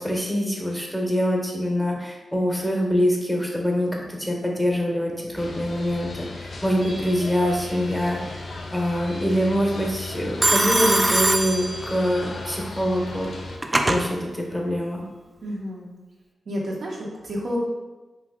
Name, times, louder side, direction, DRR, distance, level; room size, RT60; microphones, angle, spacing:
voice 1, 0.0-8.4 8.7-13.3 13.9-15.0, equal, ahead, -1 dB, 0.7 m, -24 dB
sound 1, 5.4-13.6, left 2 dB, 70° left, 0.4 m, -36 dB
Telephone, 6.8-7.3 10.4-12.3 13.3-14.0, right 2 dB, 30° right, 0.3 m, -22 dB
voice 2, 15.4-15.9 16.5-17.6, equal, 70° right, -3 dB, 0.7 m, -30 dB
2.7 x 2.2 x 3.4 m, 1.2 s
cardioid pair, 45°, 0 cm